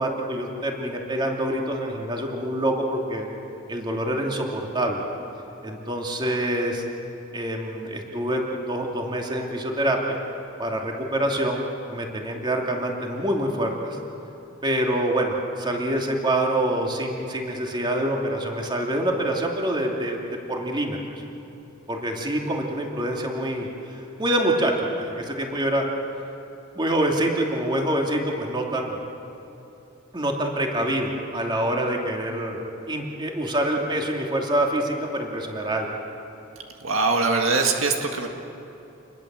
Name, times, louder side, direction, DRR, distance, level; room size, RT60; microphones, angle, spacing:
voice 1, 0.0-3.3 3.7-5.0 5.6-6.8 7.3-10.2 10.6-11.6 11.9-14.0 14.6-20.2 20.5-21.0 21.9-25.8 26.7-29.0 30.1-35.9, right 1 dB, 20° right, 0 dB, 2.7 m, -26 dB
voice 2, 36.8-38.3, right 3 dB, 70° right, 3 dB, 1.9 m, -22 dB
28.5 x 21.5 x 7.6 m, 2.9 s
head